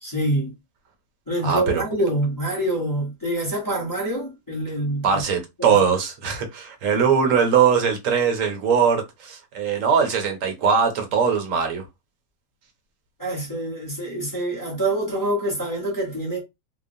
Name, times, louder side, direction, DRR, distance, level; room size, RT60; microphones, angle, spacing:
voice 1, 0.0-0.5 1.3-5.2 5.6-5.8 13.2-16.4, right 1 dB, 15° left, 0.8 m, -26 dB
voice 2, 1.4-1.8 5.0-11.8, right 6 dB, 65° right, 1.0 m, -21 dB
2.9 x 2.0 x 2.6 m
omnidirectional pair, 1.6 m